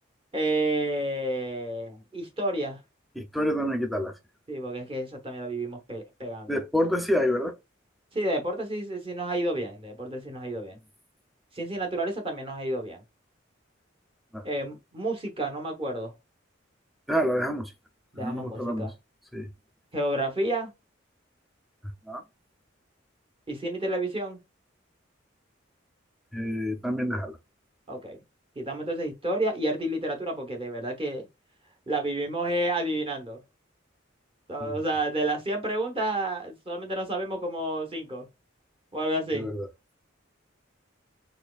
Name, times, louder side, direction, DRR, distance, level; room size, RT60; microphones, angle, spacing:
voice 1, 0.3-2.8 4.5-6.6 8.1-10.8 11.5-13.0 14.4-16.1 18.1-18.9 19.9-20.7 23.5-24.4 27.9-28.2 28.6-31.3 31.9-33.4 34.5-38.3 38.9-39.5, right 1 dB, 30° right, 0.9 m, -30 dB
voice 2, 3.2-4.2 6.5-7.5 14.3-14.4 17.1-17.7 18.2-18.9 19.3-19.5 22.1-22.2 26.3-27.4 34.6-34.7 39.3-39.7, equal, ahead, 0.5 m, -28 dB
4.3 x 3.0 x 2.3 m
head